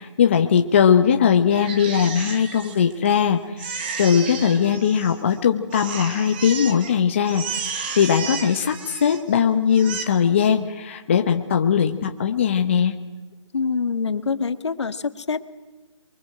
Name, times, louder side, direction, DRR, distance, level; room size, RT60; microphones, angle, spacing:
voice 1, 0.0-13.0, left 7 dB, 25° left, 5 dB, 0.8 m, -20 dB
Crying sobbing, 1.5-3.2 3.6-5.4 5.7-6.9 7.2-9.3 9.7-10.0, right 5 dB, 20° right, 1.6 m, -33 dB
voice 2, 13.5-15.4, left 5 dB, 65° left, 10 dB, 1.7 m, -25 dB
27.0 x 23.5 x 7.7 m, 1.2 s
hypercardioid pair, 170°, 16 cm